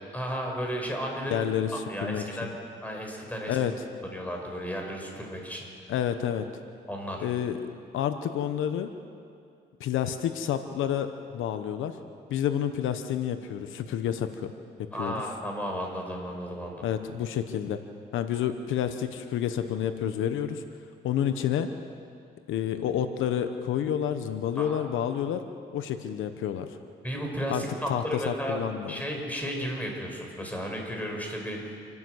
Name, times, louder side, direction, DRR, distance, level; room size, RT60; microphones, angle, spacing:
voice 1, 0.1-1.4 1.7-2.5 2.8-3.6 4.0-5.7 6.9-7.3 14.9-16.9 24.6-24.9 27.0-28.6 28.9-31.8, equal, 10° left, 1 dB, 5.4 m, -34 dB
voice 2, 1.3-2.5 3.5-3.7 5.9-6.4 7.2-7.6 7.9-8.9 9.8-12.0 12.3-14.5 15.0-15.1 16.8-17.8 18.1-20.6 21.0-21.7 22.5-25.4 25.7-26.8 27.5-29.0, left 9 dB, 85° left, 9 dB, 1.0 m, -29 dB
28.0 x 12.5 x 8.1 m, 2.4 s
cardioid pair, 90°, 20 cm